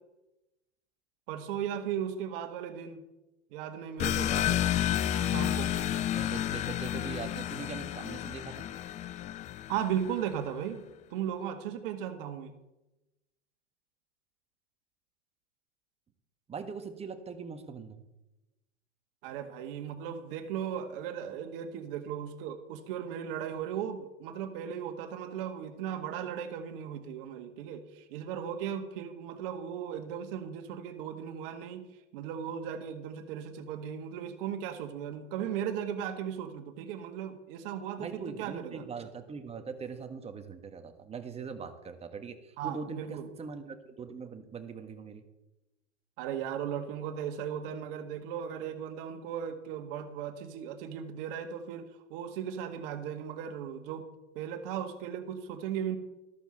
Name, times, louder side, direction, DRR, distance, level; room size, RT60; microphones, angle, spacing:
voice 1, 1.3-3.0 3.5-4.6 5.3-5.7 9.7-10.8 11.1-12.5 19.2-31.9 32.1-38.8 42.6-43.3 46.2-54.1 54.3-56.0, right 9 dB, 50° right, 8 dB, 1.9 m, -37 dB
sound 1, 4.0-10.3, left 11 dB, 20° left, 0.5 m, -31 dB
voice 2, 6.1-8.6 16.5-18.0 38.0-45.2, right 5 dB, 15° right, 7 dB, 1.6 m, -41 dB
14.0 x 13.5 x 4.3 m, 0.97 s
figure-of-eight pair, 95°, 36 cm